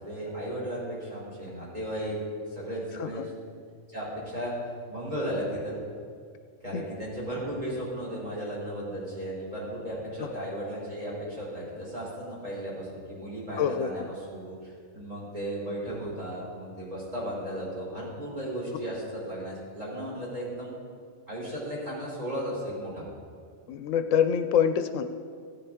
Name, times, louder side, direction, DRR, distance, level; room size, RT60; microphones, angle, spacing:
voice 1, 0.0-2.2 2.5-3.2 3.9-4.6 4.9-5.8 6.6-20.7 21.3-23.0, right 1 dB, 30° right, -6 dB, 3.8 m, -35 dB
voice 2, 13.6-13.9 23.7-25.0, left 8 dB, 80° left, 9 dB, 0.9 m, -26 dB
15.0 x 10.0 x 3.6 m, 2.2 s
omnidirectional pair, 1.3 m